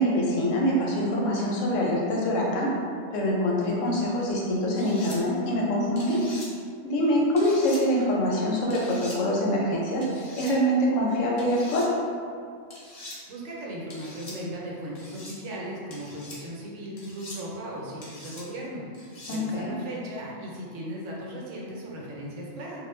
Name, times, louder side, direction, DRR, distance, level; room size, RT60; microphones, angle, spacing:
voice 1, 0.0-2.7 3.1-6.2 6.8-10.1 10.4-11.9 19.3-19.7, equal, 85° left, -3 dB, 1.0 m, -24 dB
sound 1, 4.7-5.2 5.9-6.5 7.4-7.8 8.7-9.2 10.0-10.5 11.4-11.9 12.7-13.2 13.9-14.4 14.9-15.4 15.9-16.4 17.0-17.4 18.0-18.4 18.9-19.4, left 2 dB, 45° left, 0.5 m, -43 dB
voice 2, 13.0-22.8, right 1 dB, 90° right, -4 dB, 1.0 m, -37 dB
2.4 x 2.0 x 3.1 m, 2.2 s
omnidirectional pair, 1.3 m